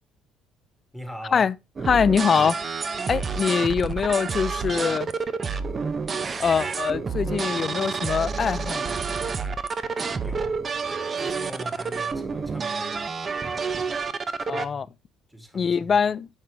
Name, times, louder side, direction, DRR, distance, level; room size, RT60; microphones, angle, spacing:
voice 1, 0.9-1.5 10.2-10.6 11.2-13.0 14.4-14.9 15.3-16.1, equal, ahead, 2.2 m, -41 dB
sound 1, 1.8-14.7, right 5 dB, 35° right, 0.8 m, -29 dB
voice 2, 1.9-2.6 3.1-5.1 6.4-9.0 14.5-14.9 15.5-16.3, left 6 dB, 40° left, 0.5 m, -23 dB
8.6 x 5.4 x 3.4 m
supercardioid pair, 80°, 0 cm